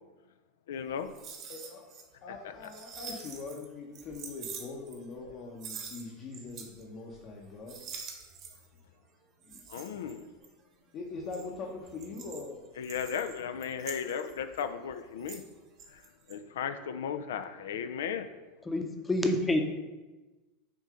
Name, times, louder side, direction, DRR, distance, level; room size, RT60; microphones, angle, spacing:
voice 1, 0.7-1.1 9.7-10.3 12.8-15.4 15.9-16.0 16.3-18.3, left 7 dB, 75° left, 9 dB, 0.4 m, -35 dB
sound 1, 0.9-2.0 2.3-3.6 3.9-5.3 5.6-6.8 7.1-7.4 7.7-8.8 9.4-10.6 11.1-15.5 15.8-16.3, right 6 dB, 50° right, 1.2 m, -46 dB
voice 2, 1.5-1.9 2.2-7.9 9.4-10.2 10.9-12.6, left 4 dB, 50° left, -2 dB, 1.0 m, -42 dB
voice 3, 18.7-19.6, left 1 dB, 15° left, 5 dB, 0.8 m, -27 dB
7.0 x 2.7 x 5.0 m, 1.2 s
hypercardioid pair, 90°, 0 cm